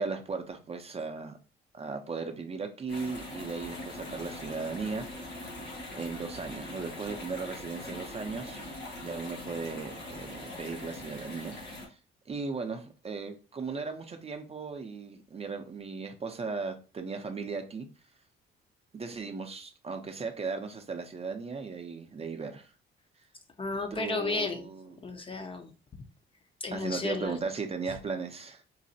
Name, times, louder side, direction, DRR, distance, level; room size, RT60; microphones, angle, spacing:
voice 1, 0.0-1.4 1.7-5.1 5.9-8.6 9.0-11.8 12.3-17.9 18.9-22.7 23.9-24.9 26.7-28.6, right 4 dB, 30° right, 0.5 m, -37 dB
sound 1, 2.9-11.9, left 1 dB, 75° left, 1.6 m, -42 dB
voice 2, 23.6-24.6 25.0-25.7 26.6-27.4, left 3 dB, 25° left, 0.5 m, -33 dB
3.9 x 2.1 x 2.6 m
cardioid pair, 90°, 20 cm